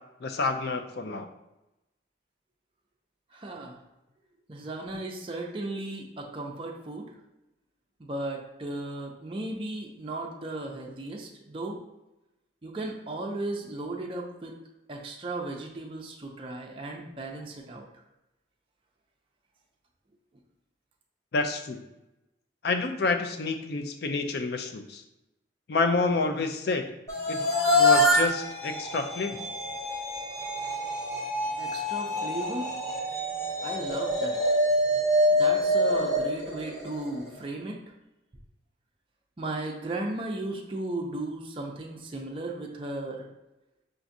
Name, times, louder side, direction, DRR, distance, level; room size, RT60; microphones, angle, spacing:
voice 1, 0.2-1.3 21.3-21.8 22.6-25.0 25.7-26.9 27.3-27.4 27.7-29.5, left 3 dB, 55° left, 6 dB, 0.4 m, -28 dB
voice 2, 3.3-3.8 4.5-7.1 8.0-11.8 12.6-14.6 14.9-17.9 31.6-32.7 33.6-34.4 35.3-37.8 39.4-43.3, right 2 dB, 30° right, -1 dB, 0.4 m, -35 dB
sound 1, 27.1-37.3, left 1 dB, 15° left, 0.9 m, -26 dB
5.9 x 2.5 x 2.6 m, 0.95 s
head